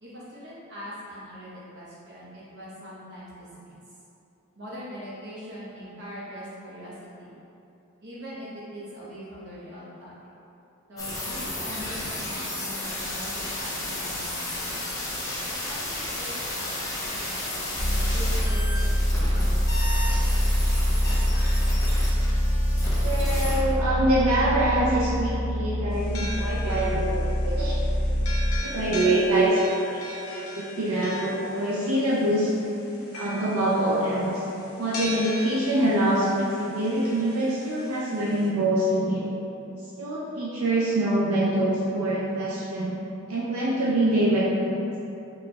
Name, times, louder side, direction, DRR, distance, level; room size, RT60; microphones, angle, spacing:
voice 1, 0.0-3.7 4.6-6.9 7.2-7.3 8.0-10.1 10.9-13.3 13.5-14.7 15.6-17.8 18.1-19.5, equal, 55° right, -8 dB, 1.0 m, -42 dB
sound 1, 11.0-23.6, left 1 dB, 15° left, 0.6 m, -33 dB
sound 2, 17.8-28.6, equal, 55° left, 0.9 m, -24 dB
voice 2, 23.0-27.7 28.6-29.6 30.1-32.5 33.1-34.4 34.8-39.3 40.0-43.0 43.3-44.9, right 1 dB, 90° right, -6 dB, 0.5 m, -25 dB
sound 3, 25.9-38.5, left 2 dB, 85° left, 0.7 m, -40 dB
4.1 x 3.2 x 2.3 m, 2.8 s
head